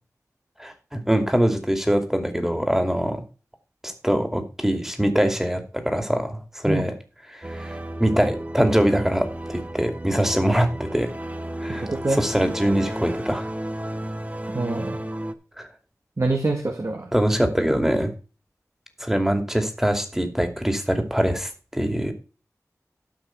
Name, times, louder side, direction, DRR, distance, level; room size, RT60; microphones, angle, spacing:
voice 1, 0.6-3.2 3.8-6.9 7.3-11.1 11.6-13.5 15.6-15.7 17.1-18.1 19.0-22.1, equal, 5° right, 7 dB, 2.5 m, -23 dB
sound 1, 7.4-15.3, right 1 dB, 25° right, 1.3 m, -33 dB
voice 2, 11.7-12.2 14.5-15.0 16.2-17.1, right 2 dB, 55° right, 3 dB, 1.9 m, -25 dB
13.0 x 5.8 x 4.6 m, 0.35 s
wide cardioid pair, 50°, 6 cm